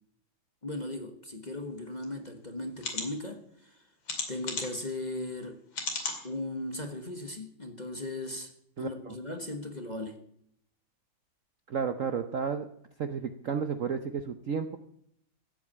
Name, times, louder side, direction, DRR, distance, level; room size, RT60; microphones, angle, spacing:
voice 1, 0.6-3.8 4.3-5.6 6.2-10.2, left 2 dB, 25° left, 1.2 m, -37 dB
sound 1, 2.0-2.1 2.8-3.1 4.1-4.8 5.7-6.2 6.8-6.9 7.2-7.3, left 3 dB, 75° left, 3.3 m, -34 dB
voice 2, 11.7-12.7 13.0-14.8, right 6 dB, 55° right, 0.9 m, -32 dB
14.5 x 8.3 x 8.5 m
omnidirectional pair, 2.2 m